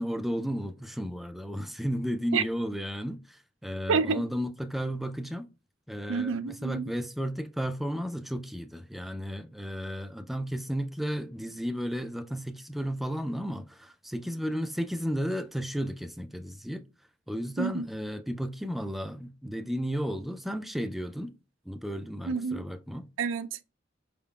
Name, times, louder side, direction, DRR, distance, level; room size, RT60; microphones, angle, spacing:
voice 1, 0.0-5.5 5.9-16.9 17.3-21.3 21.7-23.1, equal, ahead, 0.3 m, -33 dB
voice 2, 3.9-4.2 6.1-6.9 17.6-17.8 22.3-22.6 23.2-23.6, right 5 dB, 90° right, 0.4 m, -28 dB
4.4 x 3.7 x 2.3 m
head